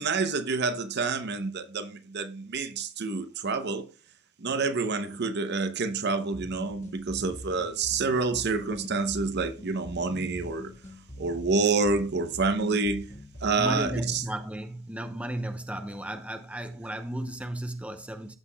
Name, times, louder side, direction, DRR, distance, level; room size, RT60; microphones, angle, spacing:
voice 1, 0.0-3.9 4.4-10.7 11.2-13.1 13.4-14.2, right 4 dB, 55° right, 0.8 m, -28 dB
sound 1, 6.3-14.3, equal, 35° left, 1.6 m, -44 dB
voice 2, 13.6-18.4, right 1 dB, 5° right, 0.7 m, -34 dB
14.5 x 5.8 x 2.3 m
head